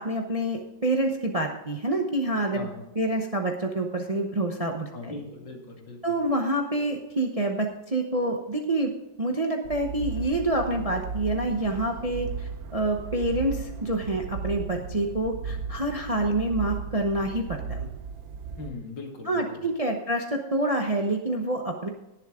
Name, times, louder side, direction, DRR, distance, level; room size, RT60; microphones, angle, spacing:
voice 1, 0.0-2.7 2.9-5.2 6.0-8.9 9.2-17.9 19.2-21.9, right 1 dB, 30° right, 3 dB, 0.7 m, -27 dB
voice 2, 2.5-2.8 4.9-6.2 12.0-12.1 18.6-19.6, left 3 dB, 80° left, 1 dB, 2.8 m, -40 dB
sound 1, 9.6-18.7, right 5 dB, 65° right, 1.0 m, -36 dB
18.0 x 7.3 x 3.7 m, 0.96 s
omnidirectional pair, 2.0 m